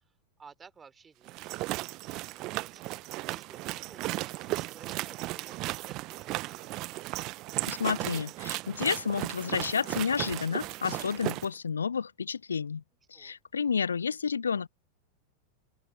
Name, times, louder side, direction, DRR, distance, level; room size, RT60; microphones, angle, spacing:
voice 1, 0.4-2.0 2.3-2.9 3.3-6.8 13.1-13.4, right 6 dB, 15° right, 3.6 m, -55 dB
sound 1, 1.3-11.5, right 20 dB, 40° right, 1.0 m, -36 dB
voice 2, 7.7-12.8 13.1-14.7, left 6 dB, 70° left, 0.6 m, -30 dB
open air
figure-of-eight pair, 90°, 0 cm